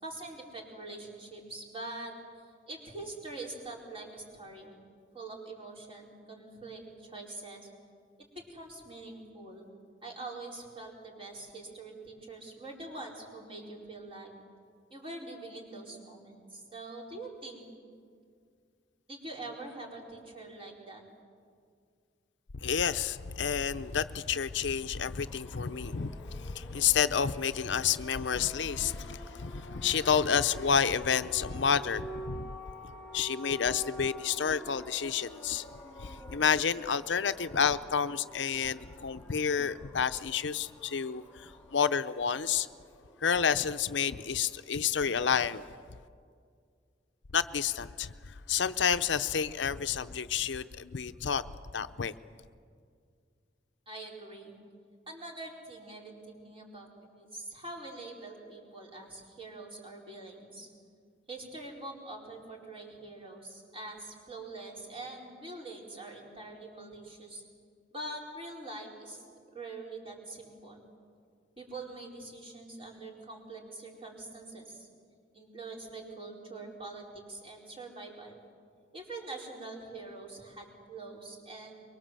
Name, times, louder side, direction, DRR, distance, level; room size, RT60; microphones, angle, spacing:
voice 1, 0.0-2.1 2.7-4.7 5.1-7.7 8.3-9.6 10.0-14.3 14.9-17.6 19.1-21.0 53.9-54.5 55.1-56.9 57.1-60.7 61.3-67.4 67.9-70.8 71.6-74.9 75.3-78.4 78.9-81.7, right 2 dB, 30° right, -1 dB, 4.7 m, -44 dB
voice 2, 22.6-32.5 33.1-35.6 36.0-42.7 43.2-45.7 47.3-51.4 51.7-52.1, left 7 dB, 75° left, 11 dB, 0.7 m, -30 dB
sound 1, 25.2-44.6, equal, 5° left, 2.0 m, -48 dB
24.0 x 23.0 x 7.7 m, 2.1 s
head